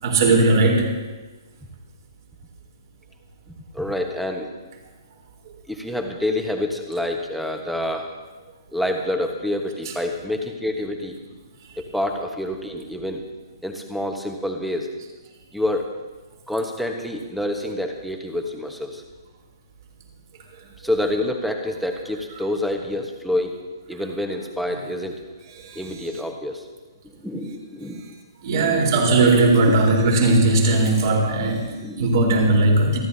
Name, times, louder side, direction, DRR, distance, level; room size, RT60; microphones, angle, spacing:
voice 1, 0.0-1.0 25.6-25.8 28.4-33.0, right 2 dB, 55° right, -1 dB, 4.1 m, -18 dB
voice 2, 3.5-4.5 5.7-8.1 8.7-11.2 11.8-13.2 13.6-14.9 15.5-15.9 16.5-19.0 20.8-23.6 23.9-25.2 25.7-26.6 27.0-28.0 28.5-28.8 29.7-29.9 31.8-32.1, left 1 dB, ahead, 3 dB, 1.3 m, -27 dB
28.0 x 12.0 x 2.8 m, 1.2 s
hypercardioid pair, 150°, 2 cm